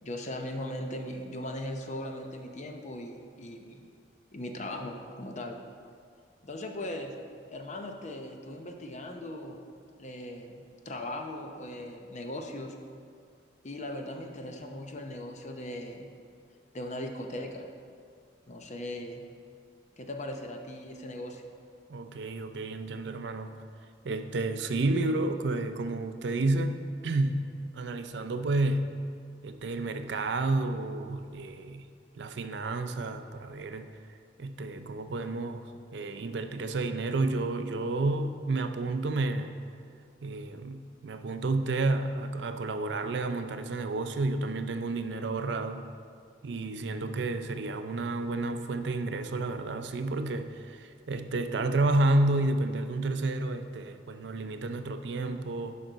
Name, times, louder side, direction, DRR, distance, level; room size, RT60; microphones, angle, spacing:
voice 1, 0.0-3.8 4.3-5.6 6.4-7.1 7.5-9.6 10.0-12.8 13.6-16.1 16.7-17.7 18.5-19.3 20.0-21.4, left 1 dB, 40° left, 3 dB, 0.7 m, -39 dB
voice 2, 21.9-23.5 24.0-28.9 29.4-31.9 32.1-33.9 34.4-35.6 35.9-39.6 40.2-45.8 46.4-55.7, right 2 dB, 65° right, 8 dB, 0.5 m, -30 dB
10.5 x 5.3 x 3.9 m, 2.2 s
head